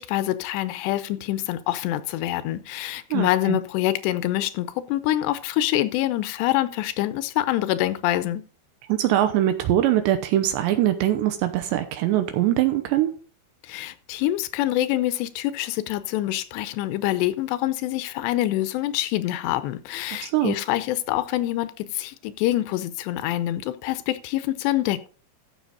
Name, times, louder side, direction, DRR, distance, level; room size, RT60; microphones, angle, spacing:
voice 1, 0.0-8.4 13.6-25.1, left 14 dB, 80° left, 2.8 m, -26 dB
voice 2, 3.1-3.6 8.9-13.1 20.2-20.5, right 13 dB, 80° right, 2.9 m, -22 dB
14.0 x 6.8 x 4.0 m
omnidirectional pair, 5.2 m